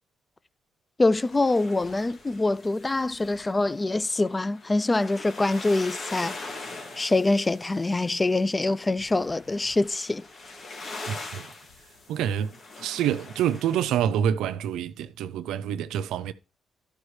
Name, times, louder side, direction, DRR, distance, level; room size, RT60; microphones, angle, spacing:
sound 1, 1.0-13.9, left 3 dB, 50° left, 2.1 m, -43 dB
voice 1, 1.0-6.4 7.0-10.2, left 2 dB, 20° left, 0.3 m, -24 dB
voice 2, 11.1-11.5 12.1-12.5 12.8-16.3, right 9 dB, 85° right, 0.5 m, -27 dB
13.0 x 5.2 x 3.2 m
cardioid pair, 90°, 0 cm